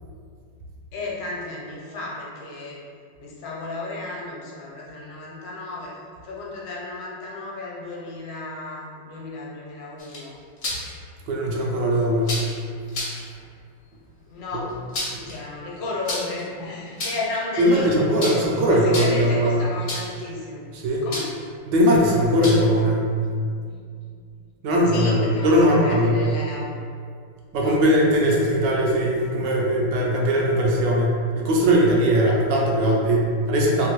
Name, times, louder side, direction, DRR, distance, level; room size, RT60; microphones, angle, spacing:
voice 1, 0.9-2.8 3.2-10.4 14.3-14.7 15.3-20.7 21.0-21.3 23.7-23.8 24.3-24.4 24.9-26.8 27.6-27.8, left 2 dB, 75° left, -4 dB, 1.3 m, -33 dB
sound 1, 10.0-10.9 12.2-12.5 12.9-13.2 14.7-15.3 16.1-16.4 16.9-17.4 18.2-18.5 18.8-19.3 19.9-20.2 21.1-21.4 22.4-22.8, left 2 dB, 55° left, 0.9 m, -30 dB
voice 2, 11.3-12.4 14.5-14.7 15.1-15.3 17.6-19.6 20.7-21.0 21.7-23.1 24.6-26.3 27.5-33.9, equal, 75° right, -2 dB, 1.2 m, -20 dB
3.4 x 2.6 x 3.0 m, 2.1 s
omnidirectional pair, 2.0 m